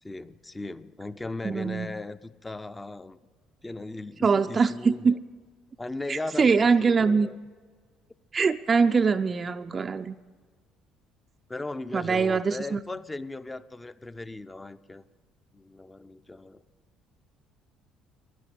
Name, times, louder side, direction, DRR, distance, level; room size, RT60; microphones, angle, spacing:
voice 1, 0.0-3.2 3.6-5.2 5.8-7.4 11.5-15.0 15.5-16.6, left 2 dB, 15° left, 13 dB, 0.6 m, -37 dB
voice 2, 1.4-1.9 4.2-5.1 6.1-7.3 8.3-10.2 11.9-12.8, right 5 dB, 30° right, 8 dB, 0.4 m, -23 dB
15.5 x 12.0 x 6.5 m, 1.5 s
figure-of-eight pair, 50°, 0 cm